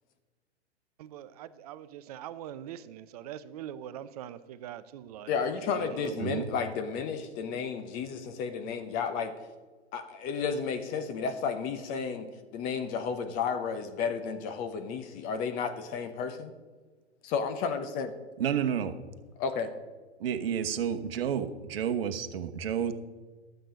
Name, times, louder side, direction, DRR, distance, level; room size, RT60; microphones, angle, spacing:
voice 1, 1.0-6.1, right 11 dB, 35° right, 0.6 m, -43 dB
voice 2, 5.3-9.3 9.9-16.5 17.2-18.1 19.4-19.7, left 6 dB, 25° left, 0.9 m, -32 dB
voice 3, 18.4-18.9 20.2-22.9, right 8 dB, 55° right, 1.2 m, -30 dB
12.5 x 7.9 x 5.1 m
hypercardioid pair, 125°, 35 cm